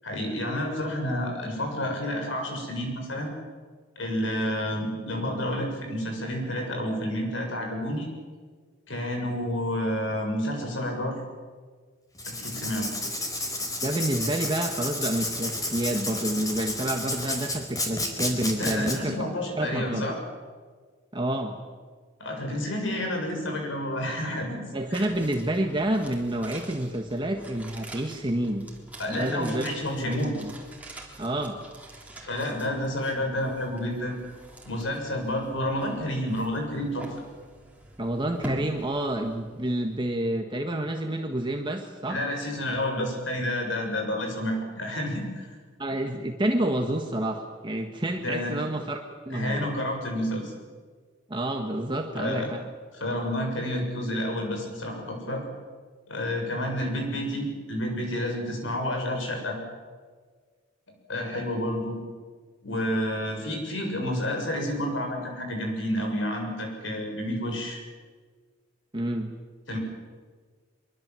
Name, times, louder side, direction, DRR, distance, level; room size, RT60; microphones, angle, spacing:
voice 1, 0.0-3.3 4.0-8.1 8.9-11.2 12.3-12.9 18.6-20.2 22.2-24.6 24.9-25.1 29.0-30.3 32.2-34.2 34.7-37.1 42.1-45.6 48.2-48.6 49.3-50.5 52.1-52.5 52.9-55.4 56.1-59.6 61.1-62.0 62.6-67.8 69.7-69.8, left 1 dB, 80° left, 3 dB, 7.4 m, -30 dB
Writing, 12.1-19.0, left 2 dB, 20° left, 4.6 m, -31 dB
voice 2, 13.8-19.2 19.6-20.1 21.1-21.6 24.7-28.7 29.1-29.7 30.0-30.5 31.2-31.6 38.0-42.2 42.7-42.8 45.8-49.0 49.2-49.7 51.3-52.6 55.3-55.4 68.9-69.3, right 1 dB, 25° right, 3 dB, 1.6 m, -29 dB
sound 1, 24.9-40.1 40.4-40.5, right 1 dB, 10° right, 3.6 m, -45 dB
24.5 x 23.5 x 7.8 m, 1.5 s
head